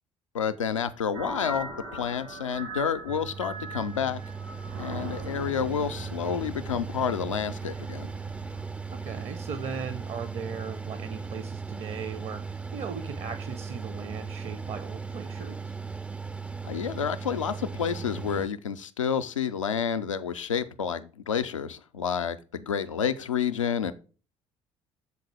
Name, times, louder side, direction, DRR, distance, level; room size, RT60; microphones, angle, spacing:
voice 1, 0.3-4.2 4.8-8.1 16.6-23.9, left 7 dB, 85° left, 0.4 m, -29 dB
sound 1, 1.1-8.7, right 2 dB, 80° right, 2.7 m, -41 dB
Mechanical fan, 3.1-18.5, right 5 dB, 5° right, 0.3 m, -37 dB
voice 2, 8.9-15.7, right 6 dB, 40° right, 0.7 m, -38 dB
7.1 x 3.9 x 4.7 m
figure-of-eight pair, 55°, 16 cm